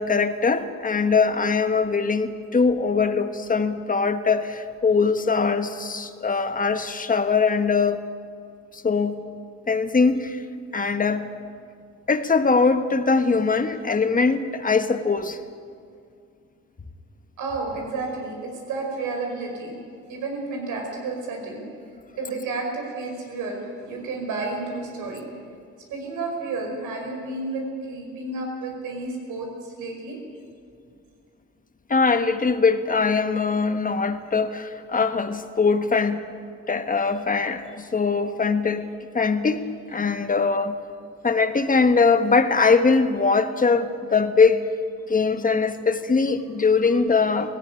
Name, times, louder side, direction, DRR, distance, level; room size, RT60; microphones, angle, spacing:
voice 1, 0.0-8.0 8.7-9.2 9.7-10.4 10.7-11.3 12.1-15.4 31.9-36.2 36.7-38.9 39.1-39.6 39.9-40.8 41.2-44.6 45.1-47.6, left 4 dB, 25° left, 8 dB, 1.4 m, -21 dB
voice 2, 17.4-19.8 20.1-21.6 22.2-25.3 25.9-30.2 40.1-40.3, right 3 dB, 85° right, 1 dB, 5.3 m, -31 dB
18.0 x 15.0 x 9.9 m, 2.3 s
cardioid pair, 90°, 30 cm